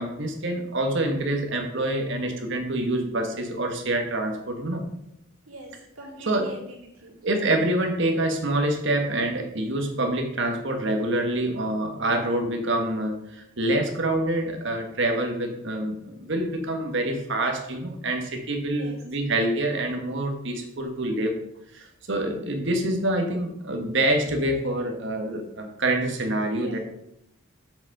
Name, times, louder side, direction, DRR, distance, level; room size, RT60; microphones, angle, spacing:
voice 1, 0.0-4.8 6.3-6.5 7.2-21.4 21.7-26.8, right 1 dB, 60° right, 4 dB, 1.5 m, -26 dB
voice 2, 5.5-7.2 18.8-19.0 26.5-26.8, right 1 dB, 90° right, -4 dB, 3.2 m, -43 dB
7.2 x 6.4 x 5.4 m, 0.80 s
head